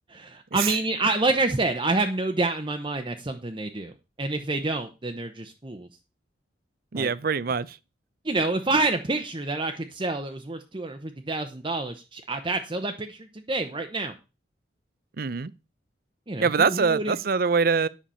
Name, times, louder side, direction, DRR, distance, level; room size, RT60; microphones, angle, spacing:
voice 1, 0.1-3.9 4.2-5.9 6.9-7.1 8.2-14.1 16.3-17.2, right 2 dB, 30° right, 0.8 m, -28 dB
voice 2, 6.9-7.8 15.2-15.5 16.4-17.9, right 5 dB, 55° right, 0.6 m, -24 dB
10.5 x 6.7 x 5.6 m
head